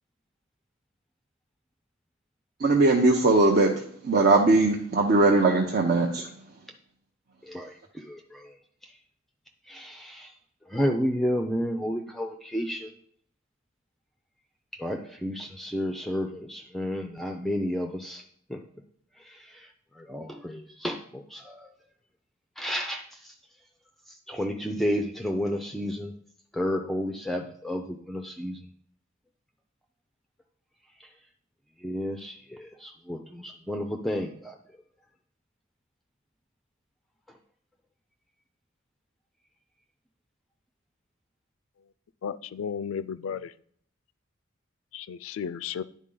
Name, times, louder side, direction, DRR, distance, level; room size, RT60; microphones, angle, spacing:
voice 1, 2.6-3.7 4.0-6.2, right 2 dB, 50° right, 1 dB, 0.6 m, -20 dB
voice 2, 9.7-10.3 10.7-12.9 14.8-18.2 18.5-18.6 20.1-21.0 21.3-21.4 22.6-23.0 24.3-26.1 26.6-28.6 31.8-32.3 32.8-34.3, equal, ahead, 4 dB, 0.4 m, -30 dB
voice 3, 42.2-43.5 44.9-45.8, left 7 dB, 85° left, 15 dB, 0.3 m, -34 dB
10.0 x 4.1 x 3.8 m, 0.62 s
head